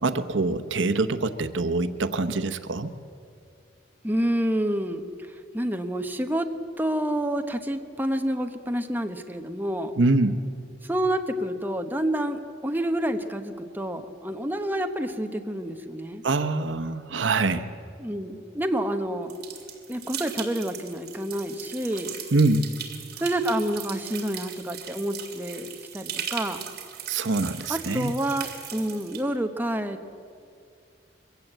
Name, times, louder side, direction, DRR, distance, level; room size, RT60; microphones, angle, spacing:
voice 1, 0.0-2.9 10.0-10.4 16.2-17.7 22.3-22.6 27.1-28.1, right 3 dB, 85° right, 10 dB, 0.9 m, -24 dB
voice 2, 4.0-5.0 5.5-6.5 6.8-9.9 10.8-16.2 18.0-19.3 19.9-22.2 23.2-26.6 27.7-30.0, right 1 dB, 10° right, 6 dB, 1.0 m, -28 dB
sound 1, 19.3-29.2, right 9 dB, 55° right, 2.5 m, -38 dB
22.5 x 16.5 x 8.0 m, 2.4 s
head